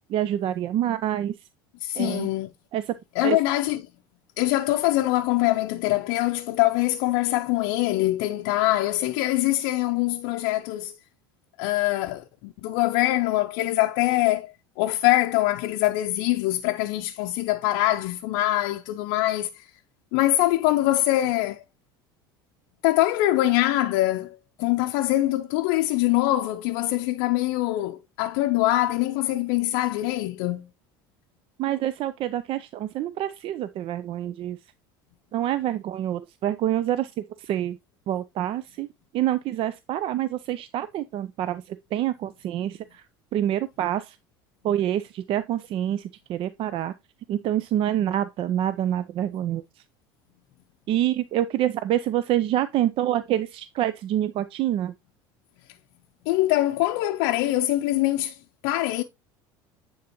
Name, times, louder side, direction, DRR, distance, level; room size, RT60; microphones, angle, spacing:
voice 1, 0.1-1.3 2.0-2.3 2.7-2.9 3.2-3.4 31.6-34.6 35.3-37.1 37.4-37.8 38.1-38.9 39.1-43.0 43.3-44.2 44.6-46.9 47.3-49.6 50.9-54.9, right 12 dB, 50° right, 0.4 m, -26 dB
voice 2, 1.8-2.5 3.1-3.8 4.4-11.0 11.6-19.7 20.1-21.6 22.8-30.7 56.3-58.4 58.6-59.0, left 16 dB, 70° left, 0.5 m, -23 dB
9.3 x 3.9 x 2.9 m
hypercardioid pair, 80°, 12 cm